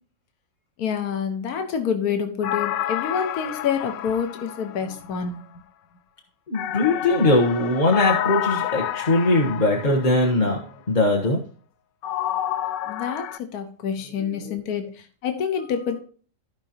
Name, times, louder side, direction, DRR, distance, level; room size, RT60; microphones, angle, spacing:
voice 1, 0.8-5.4 12.9-14.9 15.2-16.0, left 7 dB, 60° left, 6 dB, 1.5 m, -27 dB
sound 1, 2.4-5.3 6.5-10.4 12.0-13.4, left 11 dB, 90° left, 1.3 m, -29 dB
voice 2, 6.5-11.4 14.2-14.6, left 2 dB, 30° left, 0 dB, 1.2 m, -21 dB
15.0 x 5.5 x 2.9 m, 0.41 s
omnidirectional pair, 1.9 m